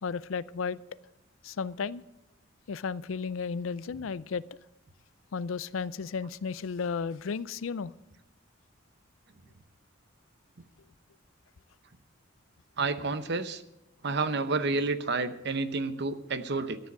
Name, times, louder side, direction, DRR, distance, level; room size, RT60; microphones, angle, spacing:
voice 1, 0.0-0.8 1.4-2.0 2.7-4.4 5.3-7.9, left 5 dB, 85° left, 18 dB, 0.4 m, -33 dB
voice 2, 12.8-13.6 14.0-16.8, right 3 dB, 60° right, 11 dB, 0.8 m, -30 dB
14.0 x 9.7 x 6.2 m, 0.90 s
head